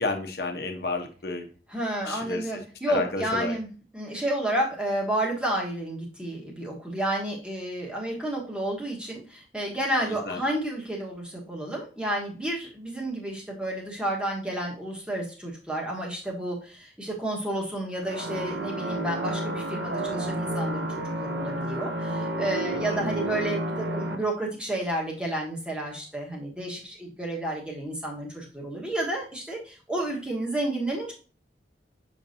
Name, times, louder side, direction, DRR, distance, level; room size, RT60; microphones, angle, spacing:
voice 1, 0.0-1.5 2.1-2.4 2.9-3.6 10.0-10.4 22.9-23.0, left 3 dB, 60° left, 3 dB, 1.0 m, -31 dB
voice 2, 1.7-20.9 21.2-31.1, right 1 dB, 5° right, -3 dB, 1.3 m, -31 dB
sound 1, 18.0-24.2, right 1 dB, 80° right, 0.9 m, -30 dB
7.1 x 5.1 x 2.7 m, 0.38 s
head